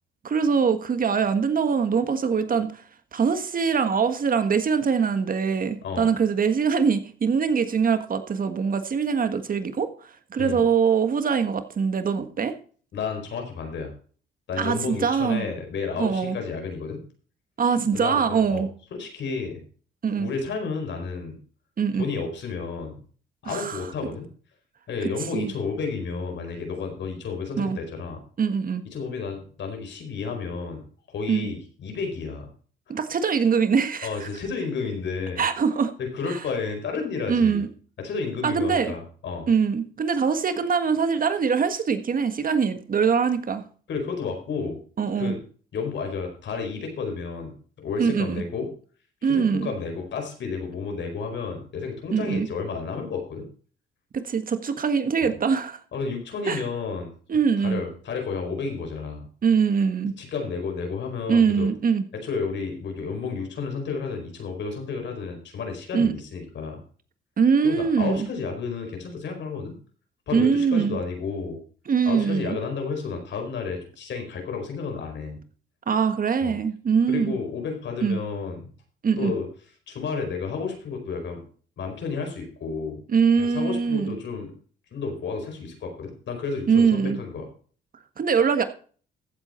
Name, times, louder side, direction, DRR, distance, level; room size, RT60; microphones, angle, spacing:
voice 1, 0.2-2.8 3.1-9.9 10.3-12.5 14.6-15.4 16.0-16.4 17.6-18.7 20.0-20.3 21.8-22.1 23.4-23.9 25.3-25.5 27.6-27.8 28.4-28.8 31.3-31.5 32.9-34.3 35.4-35.9 36.3-36.4 37.3-37.7 38.4-39.0 39.5-43.6 45.0-45.4 48.0-48.4 49.2-49.7 52.1-52.5 54.1-55.8 56.5-56.6 57.3-57.8 59.4-60.1 61.3-62.1 65.9-66.1 67.4-68.3 70.3-71.0 71.9-72.6 75.9-77.4 78.0-78.2 79.0-79.3 83.1-84.2 86.7-87.2 88.2-88.6, right 6 dB, 45° right, 1.5 m, -23 dB
voice 2, 12.9-13.9 14.5-17.0 17.9-19.6 20.2-21.4 22.0-23.0 23.4-24.3 24.9-28.2 28.9-32.5 34.0-35.4 36.0-37.6 38.0-39.5 43.9-44.8 45.2-45.4 45.7-48.7 49.2-53.5 55.2-55.3 55.9-57.1 57.6-59.3 60.2-61.7 62.1-66.8 67.6-69.8 70.3-71.6 72.1-75.4 76.4-76.5 77.1-78.7 79.2-79.5 79.9-81.4 81.8-83.0 83.4-84.5 84.9-87.5, left 5 dB, 65° left, 4.7 m, -31 dB
15.0 x 8.1 x 4.4 m
cardioid pair, 90°, 20 cm